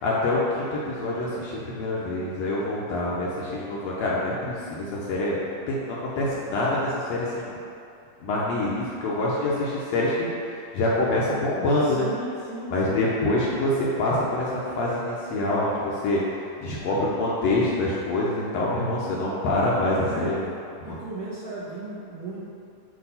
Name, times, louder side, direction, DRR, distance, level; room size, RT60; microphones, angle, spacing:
voice 1, 0.0-7.6 8.2-12.1 12.7-20.3 20.9-21.0, left 2 dB, 75° left, -6 dB, 1.7 m, -26 dB
voice 2, 11.8-13.0 20.1-20.5 20.8-22.4, right 2 dB, 55° right, -11 dB, 1.6 m, -36 dB
8.5 x 2.9 x 5.5 m, 2.6 s
omnidirectional pair, 3.6 m